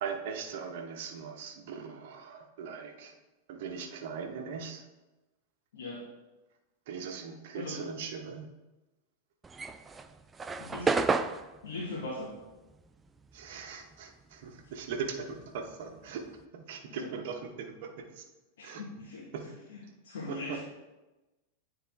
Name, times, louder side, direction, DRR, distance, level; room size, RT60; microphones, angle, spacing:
voice 1, 0.0-3.1 3.5-4.8 6.9-8.5 13.3-18.2 18.6-18.8 19.3-19.4 20.3-20.6, right 6 dB, 65° right, 5 dB, 0.9 m, -40 dB
voice 2, 5.7-6.0 7.5-7.8 10.6-10.9 11.6-12.3 16.9-17.1 18.6-19.3 19.7-20.6, left 2 dB, 75° left, -5 dB, 1.3 m, -40 dB
sound 1, 9.4-14.2 14.4-16.4, right 4 dB, 15° right, 0.4 m, -33 dB
9.1 x 3.6 x 3.5 m, 1.1 s
hypercardioid pair, 100°, 0 cm